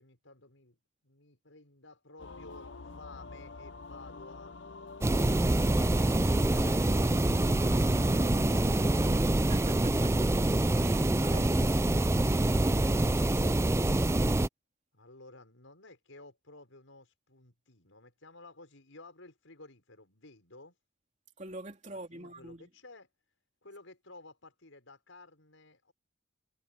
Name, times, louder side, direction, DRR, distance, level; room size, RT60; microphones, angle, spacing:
voice 1, 0.0-4.5 14.9-20.8 21.9-23.1 23.6-25.9, left 2 dB, 85° left, 5.7 m, -54 dB
sound 1, 2.2-9.2, left 3 dB, 65° left, 0.8 m, -46 dB
sound 2, 5.0-14.5, right 1 dB, 15° right, 0.4 m, -26 dB
voice 2, 9.3-10.3 10.7-13.6 21.4-22.7, right 1 dB, 35° right, 3.1 m, -45 dB
head